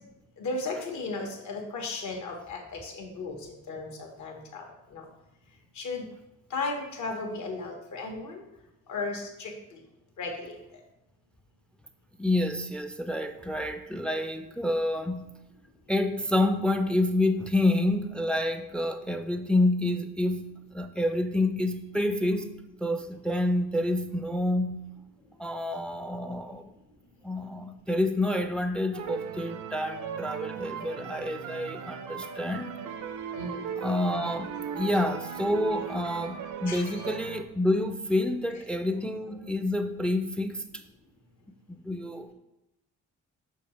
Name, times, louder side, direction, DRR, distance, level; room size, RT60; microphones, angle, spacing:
voice 1, 0.4-3.3 3.7-4.7 4.9-5.0 5.8-6.0 6.5-8.4 8.9-9.8 10.2-10.5 33.3-33.7 36.7-37.1, left 3 dB, 70° left, 2 dB, 1.5 m, -35 dB
voice 2, 12.2-15.3 15.9-22.5 22.8-24.9 25.4-26.7 27.2-32.7 33.8-40.6 41.8-42.3, left 1 dB, 5° left, 8 dB, 0.4 m, -28 dB
sound 1, 28.9-37.4, right 7 dB, 80° right, 0.6 m, -38 dB
6.4 x 2.9 x 5.6 m, 0.91 s
cardioid pair, 90°, 30 cm